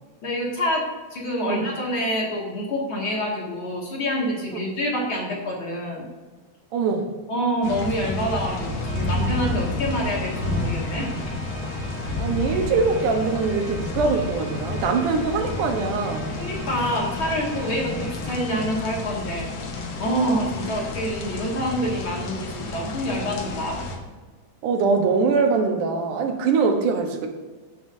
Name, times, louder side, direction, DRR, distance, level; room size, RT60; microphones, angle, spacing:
voice 1, 0.2-0.8 1.1-6.1 7.3-11.1 16.4-19.5 20.0-23.8, equal, 45° left, -3 dB, 2.6 m, -27 dB
voice 2, 6.7-7.1 12.2-16.4 24.6-27.3, right 4 dB, 80° right, 4 dB, 2.6 m, -23 dB
sound 1, 7.6-24.0, left 2 dB, 60° left, 2.4 m, -30 dB
Organ, 8.6-19.2, left 1 dB, 65° right, 4.1 m, -39 dB
16.0 x 7.7 x 2.7 m, 1.3 s
omnidirectional pair, 3.6 m